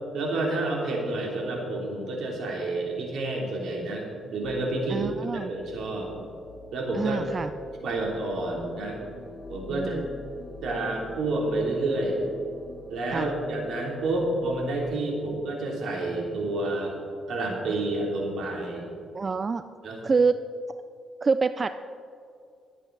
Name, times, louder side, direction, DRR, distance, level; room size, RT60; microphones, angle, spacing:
voice 1, 0.1-4.0 4.3-6.1 6.7-7.2 7.8-9.0 9.5-10.0 10.6-12.2 12.9-17.0 17.3-18.9 19.8-20.0, right 2 dB, 70° right, -1 dB, 3.1 m, -29 dB
sound 1, 4.4-14.7, left 3 dB, 45° left, 2.0 m, -45 dB
voice 2, 4.9-5.5 6.9-7.5 9.7-10.1 13.1-13.3 19.1-19.6 20.0-20.4 21.2-21.7, right 4 dB, 35° right, 11 dB, 0.4 m, -26 dB
22.0 x 8.3 x 4.0 m, 2.4 s
cardioid pair, 90°, 0 cm